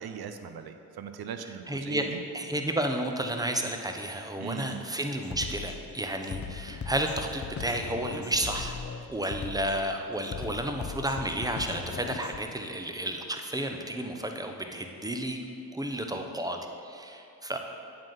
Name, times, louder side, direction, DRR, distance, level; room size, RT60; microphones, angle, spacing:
voice 1, 0.0-2.2 4.4-4.8, right 7 dB, 55° right, 8 dB, 0.7 m, -39 dB
voice 2, 1.7-2.1 2.3-8.8 9.1-15.4 15.7-16.6 16.8-17.6, right 1 dB, 10° right, 4 dB, 0.9 m, -32 dB
Drum kit, 4.6-4.7 5.2-12.4, left 6 dB, 30° left, 0.6 m, -39 dB
8.7 x 3.9 x 5.8 m, 2.5 s
hypercardioid pair, 45°, 45 cm